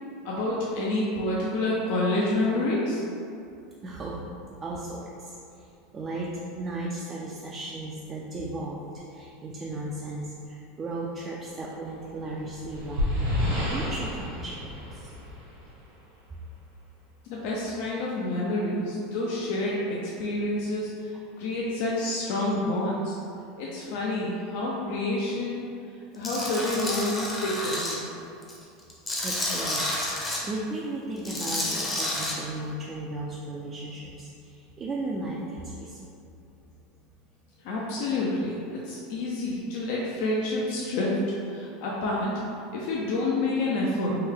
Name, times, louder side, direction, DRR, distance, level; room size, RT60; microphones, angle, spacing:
voice 1, 0.2-3.0 17.3-20.9 21.4-23.2 23.6-25.6 26.1-28.1 37.6-41.2 41.5-42.3 42.7-44.1, left 2 dB, 65° left, -5 dB, 0.5 m, -28 dB
voice 2, 3.8-4.2 4.6-8.8 9.1-13.2 13.7-15.1 16.3-16.4 29.2-29.9 30.1-36.1, right 2 dB, 25° right, -3 dB, 0.3 m, -36 dB
sound 1, 12.1-15.8, left 1 dB, 75° right, 1.3 m, -30 dB
Tools, 26.2-27.9 28.4-30.4 31.2-32.3, left 1 dB, 15° left, 0.6 m, -30 dB
3.2 x 2.2 x 3.6 m, 2.5 s
supercardioid pair, 120°, 0 cm